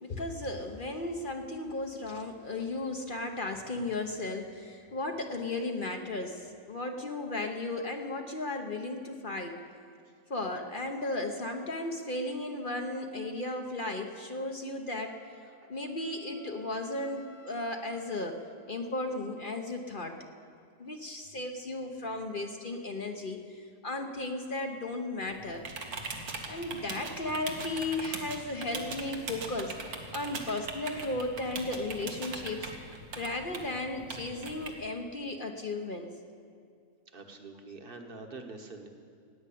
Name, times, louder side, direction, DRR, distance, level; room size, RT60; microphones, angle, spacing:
voice 1, 0.0-9.6 10.3-15.2 15.7-18.4 18.7-20.2 20.8-25.6 26.5-36.1, left 2 dB, 40° left, 4 dB, 1.0 m, -35 dB
Wind instrument woodwind instrument, 15.0-19.0, left 2 dB, 65° left, 1.4 m, -53 dB
voice 2, 15.4-15.7 37.1-38.9, right 3 dB, 40° right, 5 dB, 1.4 m, -46 dB
sound 1, 25.2-34.7, right 3 dB, 85° right, 1.9 m, -41 dB
16.5 x 9.6 x 8.5 m, 2.3 s
omnidirectional pair, 1.5 m